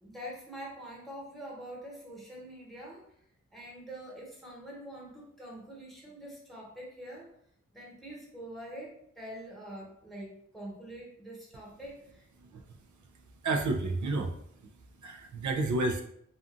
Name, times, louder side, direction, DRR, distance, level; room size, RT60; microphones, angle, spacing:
voice 1, 0.0-3.0 3.5-7.3 7.7-12.2, right 1 dB, ahead, -4 dB, 1.1 m, -45 dB
voice 2, 13.4-14.3 15.0-16.0, right 2 dB, 70° right, 4 dB, 0.5 m, -30 dB
2.5 x 2.4 x 2.5 m, 0.69 s
cardioid pair, 45°, 31 cm